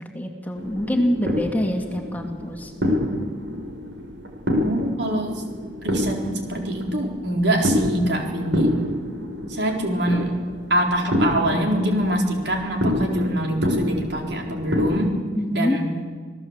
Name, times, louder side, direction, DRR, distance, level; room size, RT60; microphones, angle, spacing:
voice 1, 0.1-2.7 15.4-15.8, equal, 10° left, 2 dB, 2.5 m, -25 dB
sound 1, 0.5-15.1, left 1 dB, 80° right, 4.9 m, -27 dB
voice 2, 4.6-5.4 5.8-8.7 9.6-10.3 10.7-15.1 15.5-15.9, right 1 dB, 65° right, 2 dB, 4.3 m, -24 dB
27.5 x 18.0 x 8.2 m, 1.5 s
head